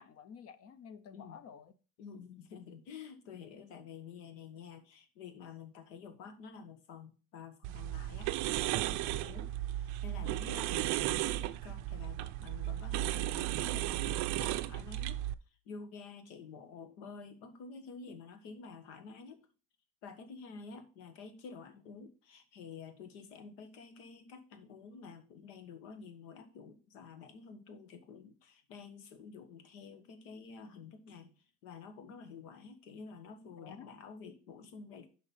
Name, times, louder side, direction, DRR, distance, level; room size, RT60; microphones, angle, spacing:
voice 1, 0.0-1.7 33.6-33.9, left 7 dB, 40° left, 15 dB, 0.7 m, -51 dB
voice 2, 1.1-1.4 2.0-15.3 15.6-19.4 20.0-35.1, left 5 dB, 70° left, 9 dB, 1.5 m, -50 dB
sound 1, 7.6-15.3, right 15 dB, 50° right, 0.5 m, -35 dB
6.0 x 5.2 x 5.5 m, 0.36 s
supercardioid pair, 120°, 39 cm